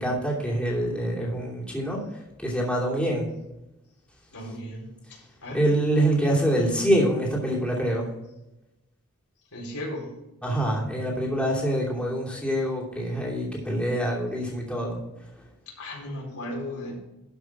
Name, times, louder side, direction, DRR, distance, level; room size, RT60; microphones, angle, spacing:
voice 1, 0.0-3.3 5.5-8.1 10.4-15.0, right 1 dB, 5° left, -4 dB, 2.7 m, -25 dB
voice 2, 4.3-5.6 9.5-10.1 15.7-16.9, left 1 dB, 85° left, -2 dB, 4.3 m, -36 dB
12.5 x 6.1 x 4.8 m, 0.94 s
head